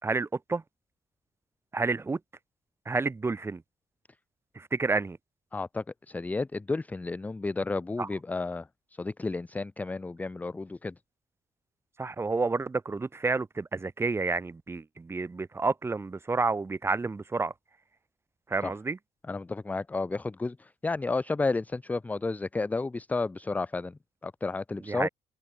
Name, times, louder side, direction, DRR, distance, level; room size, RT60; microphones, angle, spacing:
voice 1, 0.0-0.6 1.7-2.2 2.9-3.6 4.6-5.2 8.0-8.1 12.0-17.5 18.5-19.0 24.8-25.1, right 3 dB, 15° right, 2.2 m, -30 dB
voice 2, 5.5-8.7 9.0-10.9 18.6-18.7 19.3-25.1, left 3 dB, 10° left, 0.5 m, -32 dB
open air
cardioid pair, 155°, 14 cm